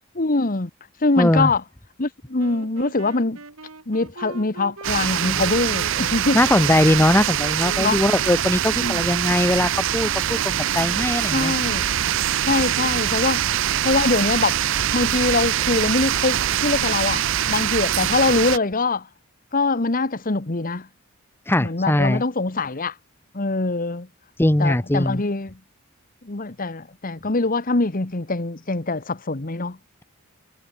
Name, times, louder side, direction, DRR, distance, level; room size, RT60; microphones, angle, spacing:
voice 1, 0.1-0.7 1.0-1.6 2.0-3.4 3.9-6.4 7.8-8.0 8.8-9.0 11.3-11.9 12.4-13.4 13.8-14.6 14.9-19.1 19.5-20.9 21.6-22.9 23.3-24.1 24.6-25.6 26.2-29.8, left 3 dB, 40° left, 1.2 m, -23 dB
voice 2, 1.2-1.5 6.3-11.5 21.5-22.2 24.4-25.2, left 1 dB, 10° left, 0.7 m, -20 dB
sound 1, 2.4-11.6, right 3 dB, 75° right, 2.2 m, -39 dB
sound 2, 4.8-18.6, right 11 dB, 60° right, 0.6 m, -23 dB
head